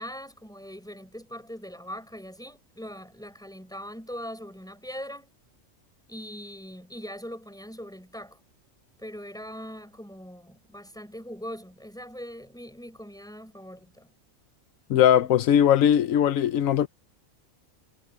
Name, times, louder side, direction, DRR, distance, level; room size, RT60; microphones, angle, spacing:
voice 1, 0.0-5.3 6.1-8.4 9.0-14.1, equal, 5° left, 5.5 m, -41 dB
voice 2, 14.9-16.9, left 10 dB, 90° left, 1.1 m, -20 dB
omnidirectional pair, 1.3 m